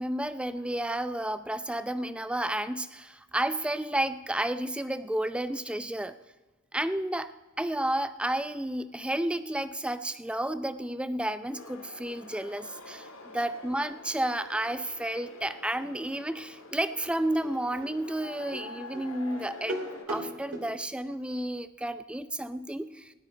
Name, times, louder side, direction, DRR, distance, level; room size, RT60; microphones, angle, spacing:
voice 1, 0.0-6.1 6.7-7.3 7.6-13.1 13.3-19.8 20.1-23.1, right 1 dB, 5° right, 12 dB, 0.4 m, -31 dB
sound 1, 11.5-20.0, left 2 dB, 80° left, 1.7 m, -47 dB
sound 2, 17.4-20.7, right 1 dB, 65° right, 2.5 m, -38 dB
17.5 x 11.5 x 5.2 m, 1.2 s
head